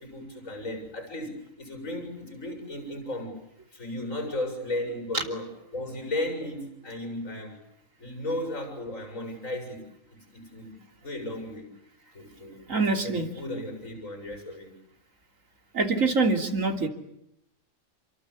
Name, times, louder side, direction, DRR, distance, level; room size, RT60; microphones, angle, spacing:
voice 1, 0.0-3.3 3.7-7.6 8.0-9.8 10.1-10.7 11.0-11.7 12.1-14.7, left 1 dB, 85° left, 6 dB, 7.6 m, -35 dB
voice 2, 12.7-13.3 15.7-16.9, right 3 dB, 85° right, 5 dB, 3.5 m, -25 dB
28.5 x 24.5 x 8.6 m, 0.80 s
omnidirectional pair, 1.3 m